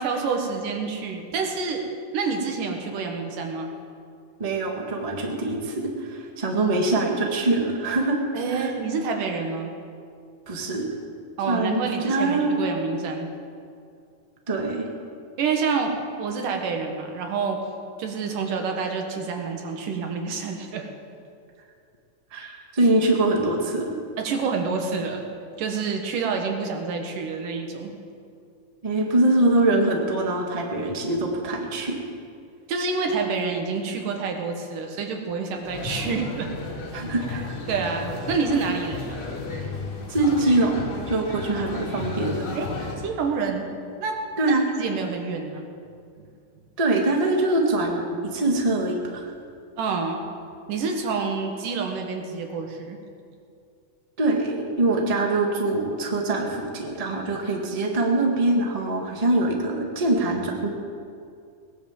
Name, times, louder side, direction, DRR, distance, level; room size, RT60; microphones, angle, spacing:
voice 1, 0.0-1.8 2.1-3.7 8.3-9.7 11.4-13.3 15.4-17.6 18.0-20.9 24.2-25.2 25.6-27.9 32.7-36.5 37.7-39.2 42.6-42.7 43.0-43.6 44.0-44.2 44.4-44.5 44.8-45.7 46.2-46.3 49.8-50.2 50.7-53.0, right 4 dB, 90° right, 3 dB, 3.2 m, -28 dB
voice 2, 4.4-8.2 8.5-8.7 10.5-10.9 11.5-12.6 14.5-14.9 22.3-23.9 28.8-32.0 36.9-37.5 40.1-42.4 44.4-44.6 46.8-49.3 54.2-60.7, right 2 dB, 20° right, 1 dB, 1.1 m, -23 dB
sound 1, 35.6-43.0, left 3 dB, 55° left, 2.9 m, -33 dB
19.0 x 10.0 x 7.3 m, 2.3 s
omnidirectional pair, 3.6 m